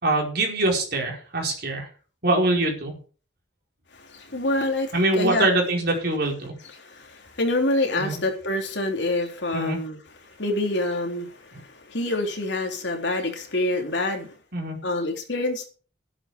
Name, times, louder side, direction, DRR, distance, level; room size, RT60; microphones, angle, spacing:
voice 1, 0.0-1.9 2.2-3.0 4.9-6.6 8.0-8.2 9.5-9.8 14.5-14.8, right 2 dB, 55° right, 1 dB, 4.7 m, -24 dB
voice 2, 4.1-5.5 6.7-10.0 10.4-11.3 11.5-14.3 14.8-15.6, left 2 dB, 65° left, 3 dB, 3.2 m, -26 dB
12.0 x 11.0 x 5.0 m, 0.39 s
head